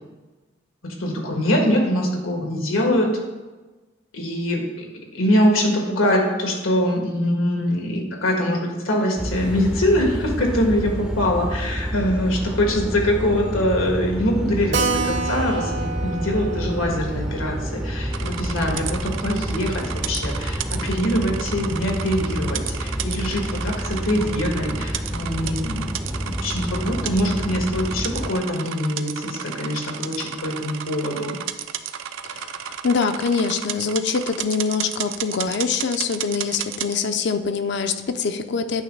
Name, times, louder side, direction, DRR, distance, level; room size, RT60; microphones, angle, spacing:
voice 1, 1.0-3.1 4.1-4.9 5.1-31.3, left 1 dB, 90° left, 1 dB, 1.6 m, -23 dB
sound 1, 9.2-28.3, equal, 5° right, 0.4 m, -29 dB
Keyboard (musical), 14.7-19.8 20.1-20.2 20.4-20.5 20.8-20.9 21.5-21.8, right 4 dB, 60° right, 0.8 m, -30 dB
sound 2, 18.1-36.9, right 9 dB, 75° right, 0.4 m, -33 dB
voice 2, 32.3-38.8, left 5 dB, 55° left, 8 dB, 0.5 m, -24 dB
9.1 x 3.1 x 6.5 m, 1.2 s
head